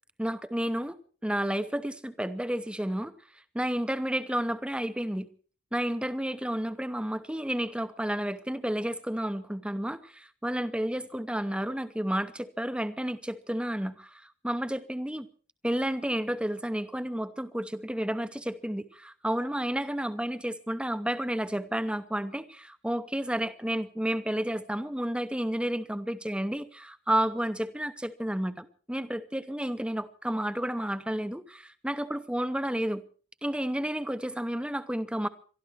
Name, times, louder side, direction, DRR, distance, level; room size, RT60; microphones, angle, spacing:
voice 1, 0.2-0.9 1.2-3.1 3.5-5.3 5.7-15.3 15.6-33.0 33.4-35.3, right 1 dB, 5° right, 0.7 m, -31 dB
23.0 x 13.0 x 4.6 m
head